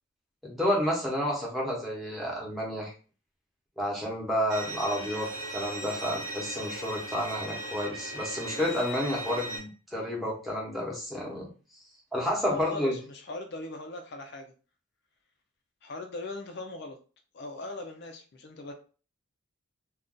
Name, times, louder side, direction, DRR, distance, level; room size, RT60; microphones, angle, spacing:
voice 1, 0.4-2.9 3.8-11.5 12.1-13.0, equal, ahead, -3 dB, 0.9 m, -30 dB
Bowed string instrument, 4.5-9.6, right 1 dB, 65° right, 0.9 m, -38 dB
voice 2, 12.5-14.4 15.8-17.0 17.3-18.7, left 2 dB, 55° left, 4 dB, 0.5 m, -39 dB
2.5 x 2.3 x 3.7 m, 0.37 s
head